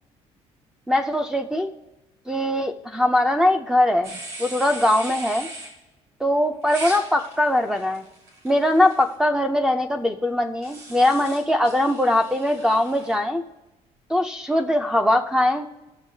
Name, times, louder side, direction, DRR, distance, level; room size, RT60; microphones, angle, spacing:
voice 1, 0.9-1.7 2.3-4.1 4.4-5.5 6.2-8.1 8.4-13.4 14.1-15.7, left 1 dB, 5° right, 6 dB, 0.4 m, -21 dB
sound 1, 4.0-5.7 6.6-9.1 10.6-13.1, right 2 dB, 65° right, 2.9 m, -39 dB
19.5 x 7.1 x 2.7 m, 1.0 s
cardioid pair, 180°, 12 cm